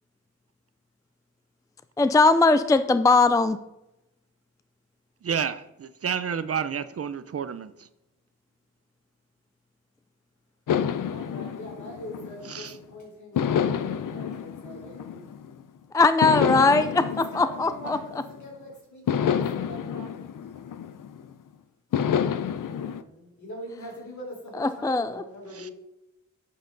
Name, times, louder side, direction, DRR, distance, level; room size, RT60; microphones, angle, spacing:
voice 1, 2.0-3.6 15.9-17.0 17.4-18.0 24.6-25.2, left 3 dB, 10° left, 12 dB, 0.3 m, -20 dB
voice 2, 5.2-7.9 12.4-12.7 25.5-25.7, right 7 dB, 50° right, 13 dB, 0.6 m, -30 dB
sound 1, 10.7-12.8 13.4-15.6 16.2-18.5 19.1-21.3 21.9-23.0, left 8 dB, 85° left, 0.6 m, -28 dB
voice 3, 11.0-15.3 16.3-20.3 20.6-20.7 22.8-25.7, equal, 65° left, -1 dB, 4.2 m, -42 dB
12.0 x 8.5 x 3.9 m, 0.89 s
wide cardioid pair, 155°, 31 cm